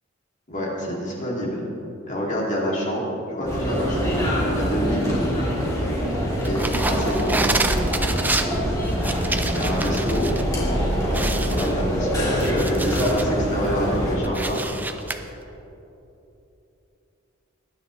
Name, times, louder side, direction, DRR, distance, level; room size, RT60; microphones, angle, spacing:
voice 1, 0.5-1.6 2.1-4.1 4.5-5.0 6.4-7.4 9.5-14.6, equal, 35° left, -3 dB, 2.3 m, -27 dB
sound 1, 3.4-14.2, equal, 15° left, 2.7 m, -24 dB
sound 2, 6.4-10.4 10.7-10.8 11.1-13.3 13.8-15.2, right 2 dB, 10° right, 0.4 m, -28 dB
20.0 x 10.0 x 3.1 m, 3.0 s
head